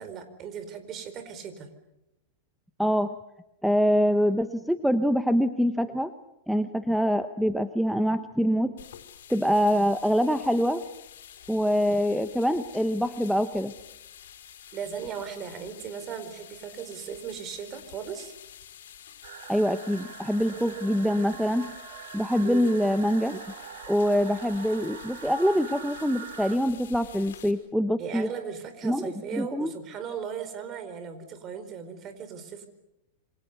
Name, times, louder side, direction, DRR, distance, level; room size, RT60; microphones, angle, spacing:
voice 1, 0.0-1.7 14.7-18.3 22.4-22.7 28.0-32.7, right 7 dB, 30° right, 10 dB, 4.5 m, -37 dB
voice 2, 2.8-3.1 3.6-6.1 6.5-8.7 9.3-10.8 11.5-13.7 19.5-21.7 22.1-23.4 23.9-28.3 28.8-29.7, equal, ahead, 9 dB, 0.9 m, -25 dB
sound 1, 8.8-27.5, left 10 dB, 85° left, 5.1 m, -49 dB
sound 2, 19.2-26.6, right 8 dB, 70° right, 4.6 m, -43 dB
28.0 x 25.5 x 6.9 m, 0.90 s
supercardioid pair, 150°, 0 cm